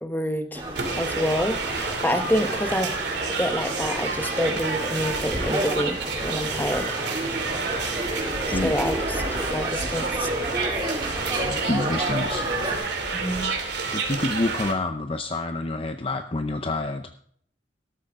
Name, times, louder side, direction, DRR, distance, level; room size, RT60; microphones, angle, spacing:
voice 1, 0.0-0.6 1.0-2.9 3.3-7.0 8.6-10.3 13.1-13.5, equal, 10° left, 7 dB, 1.2 m, -28 dB
sound 1, 0.5-12.8, right 1 dB, 25° right, 3.8 m, -31 dB
sound 2, 0.8-14.7, right 4 dB, 70° right, 2.7 m, -29 dB
voice 2, 8.5-8.8 11.4-12.5 13.9-17.1, left 2 dB, 30° left, 7 dB, 0.6 m, -28 dB
13.0 x 12.5 x 3.6 m, 0.62 s
head